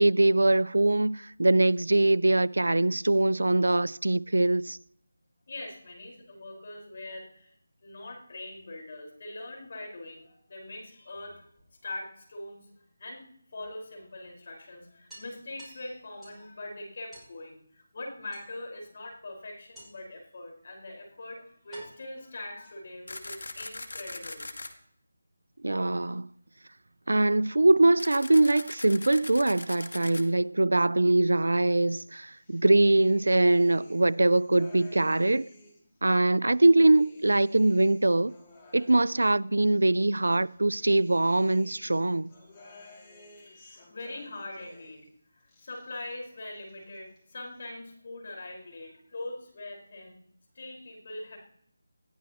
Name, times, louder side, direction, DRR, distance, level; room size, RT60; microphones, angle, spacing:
voice 1, 0.0-4.8 25.6-26.3 27.1-35.5 36.0-38.3 38.7-42.3, right 2 dB, 80° right, 0.5 m, -23 dB
voice 2, 5.5-7.5 7.8-11.4 11.8-13.2 13.5-24.5 42.7-45.0 45.3-50.2 50.5-51.4, left 2 dB, 50° left, 5.3 m, -42 dB
sound 1, 11.1-12.1 13.6-13.7 14.1-14.2 14.5-14.6 15.1-16.5 17.1-17.4 18.3-18.9 19.7-20.2 21.0-21.1 21.7-23.1, equal, ahead, 6.2 m, -52 dB
sound 2, 23.1-24.7 28.0-30.2, left 2 dB, 75° left, 2.2 m, -40 dB
sound 3, 32.3-35.9 36.4-39.8 40.3-45.1 45.4-46.3 46.6-47.3, left 2 dB, 20° left, 3.0 m, -55 dB
20.5 x 14.0 x 3.1 m
figure-of-eight pair, 165°, 0 cm